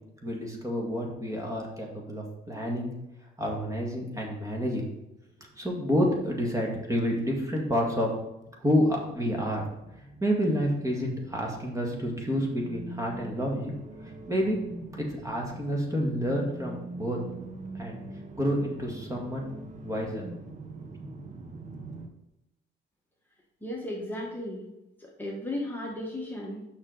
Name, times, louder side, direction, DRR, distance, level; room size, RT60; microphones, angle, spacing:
voice 1, 0.2-2.9 3.4-4.8 5.4-8.1 8.6-9.6 10.2-13.7 14.3-14.6 14.9-17.2 17.7-18.0 18.4-19.5 19.8-20.3, equal, 15° right, -1 dB, 2.0 m, -29 dB
sound 1, 6.0-8.5 8.8-22.1, right 2 dB, 40° right, 1.0 m, -43 dB
voice 2, 23.6-24.7 25.0-26.7, left 1 dB, 10° left, -3 dB, 1.5 m, -35 dB
6.2 x 6.0 x 3.9 m, 0.91 s
cardioid pair, 90°, 20 cm